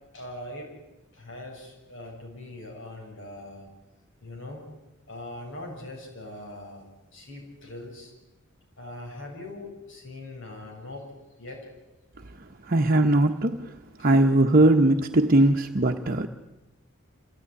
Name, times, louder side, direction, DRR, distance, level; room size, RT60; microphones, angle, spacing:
voice 1, 0.1-0.7 1.1-3.7 4.2-4.6 5.1-6.8 7.1-8.1 8.8-11.1 11.4-11.7 14.0-14.1 15.4-15.5, left 1 dB, 65° left, 6.8 m, -41 dB
voice 2, 12.6-13.7 14.0-16.3, right 1 dB, 45° right, 1.0 m, -20 dB
27.5 x 16.5 x 9.9 m
head